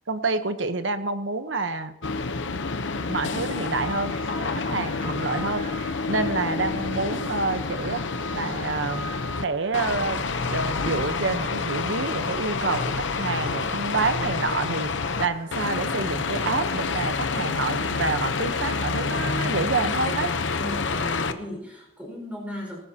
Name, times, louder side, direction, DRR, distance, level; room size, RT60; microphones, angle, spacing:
voice 1, 0.1-1.9 3.1-4.1 4.5-5.6 6.1-8.0 8.3-9.1 9.4-10.2 10.5-12.8 13.1-20.3, right 3 dB, 80° right, 10 dB, 1.0 m, -28 dB
sound 1, 2.0-9.4 9.7-15.2 15.5-21.3, left 4 dB, 80° left, 0.8 m, -28 dB
sound 2, 3.0-20.2, right 2 dB, 50° right, 2.6 m, -46 dB
voice 2, 20.5-22.8, left 1 dB, 10° right, -2 dB, 5.0 m, -36 dB
18.5 x 15.5 x 2.9 m, 0.89 s
head